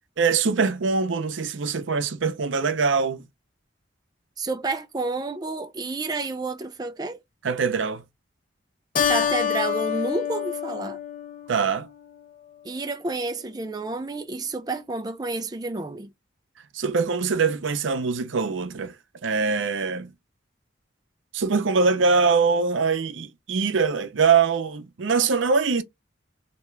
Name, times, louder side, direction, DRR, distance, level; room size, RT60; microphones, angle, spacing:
voice 1, 0.2-3.2 7.4-8.0 11.5-11.9 16.7-18.9 19.2-20.1 21.3-25.8, right 5 dB, 85° right, 0.6 m, -23 dB
voice 2, 4.4-7.2 9.1-11.0 12.6-16.1, right 3 dB, 20° right, 0.4 m, -30 dB
Keyboard (musical), 8.9-11.8, left 8 dB, 45° left, 0.5 m, -27 dB
3.3 x 2.9 x 3.1 m
head